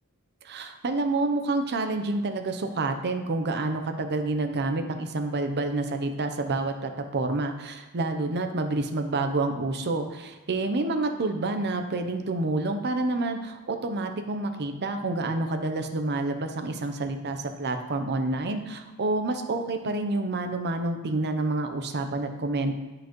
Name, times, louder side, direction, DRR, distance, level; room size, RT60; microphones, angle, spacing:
voice 1, 0.5-22.7, right 2 dB, 50° right, 6 dB, 0.7 m, -28 dB
11.5 x 4.9 x 3.1 m, 1.2 s
head